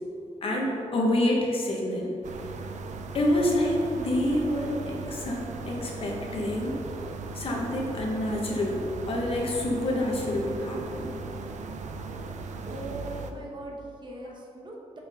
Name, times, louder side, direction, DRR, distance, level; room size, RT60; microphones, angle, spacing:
voice 1, 0.4-2.1 3.1-6.7 7.3-11.1, left 1 dB, 50° left, -1 dB, 1.2 m, -27 dB
sound 1, 2.2-13.3, right 4 dB, 80° right, 0.5 m, -38 dB
voice 2, 12.7-15.0, right 1 dB, 40° right, -1 dB, 1.0 m, -40 dB
6.2 x 5.9 x 4.9 m, 2.8 s
wide cardioid pair, 175°, 12 cm